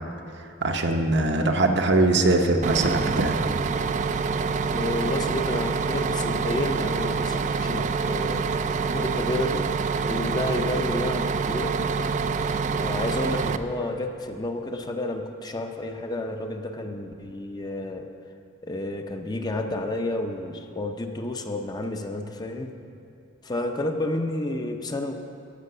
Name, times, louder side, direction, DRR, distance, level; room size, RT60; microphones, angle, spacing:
voice 1, 0.6-3.5, right 2 dB, 65° right, 4 dB, 0.8 m, -22 dB
Bus, 2.6-13.6, right 5 dB, 40° right, 0.4 m, -26 dB
voice 2, 4.7-8.4 8.9-9.7 10.1-11.8 12.8-18.1 18.6-22.7 23.4-25.1, left 1 dB, 20° left, 5 dB, 0.6 m, -30 dB
13.5 x 5.8 x 6.6 m, 2.6 s
head